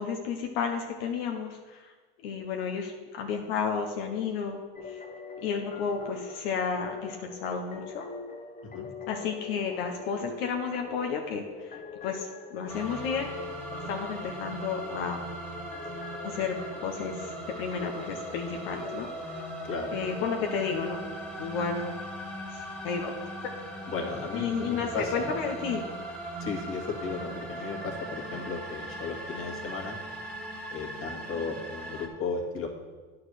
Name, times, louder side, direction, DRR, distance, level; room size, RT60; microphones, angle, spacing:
voice 1, 0.0-1.9 2.2-5.0 5.4-8.0 9.1-13.3 13.9-15.2 16.2-19.4 19.9-21.0 21.4-22.0 22.5-23.1 23.4-23.6 24.3-25.9 27.6-27.7, left 6 dB, 90° left, 3 dB, 1.0 m, -32 dB
sound 1, 4.8-20.5, left 5 dB, 25° left, 0.8 m, -44 dB
sound 2, 12.7-32.1, right 1 dB, 5° left, 1.6 m, -39 dB
voice 2, 19.6-20.1 23.9-25.3 26.4-30.0 30.7-32.7, left 4 dB, 45° left, 0 dB, 2.0 m, -35 dB
9.4 x 4.8 x 6.4 m, 1.4 s
supercardioid pair, 110°, 29 cm